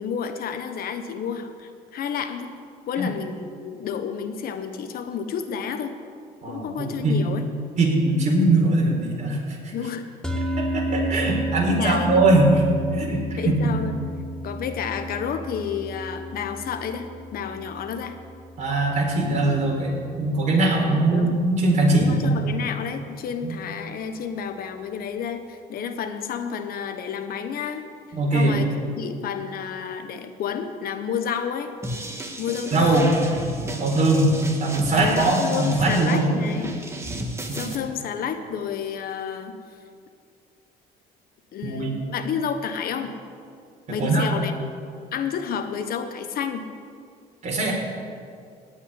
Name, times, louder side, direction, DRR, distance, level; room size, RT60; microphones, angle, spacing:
voice 1, 0.0-2.5 2.9-6.0 6.5-7.5 9.7-10.1 11.7-12.3 13.4-14.0 14.4-18.2 20.4-21.4 21.9-27.9 28.3-31.7 32.4-33.2 35.0-36.8 37.5-39.5 41.5-43.1 43.9-44.7 45.1-46.6, left 7 dB, 60° left, 8 dB, 1.2 m, -30 dB
voice 2, 6.4-7.2 7.8-9.4 9.6-9.7 10.6-12.5 12.9-13.7 18.6-22.3 23.4-23.5 28.1-28.6 32.7-33.1 33.8-34.3 34.6-36.3 37.5-37.7 41.6-41.9 43.9-44.3 47.4-47.7, right 2 dB, 45° right, -1 dB, 4.3 m, -21 dB
sound 1, 10.2-20.7, equal, 5° left, 1.5 m, -32 dB
sound 2, 31.8-37.7, right 1 dB, 15° right, 1.7 m, -33 dB
17.0 x 5.8 x 9.9 m, 2.3 s
cardioid pair, 110°, 17 cm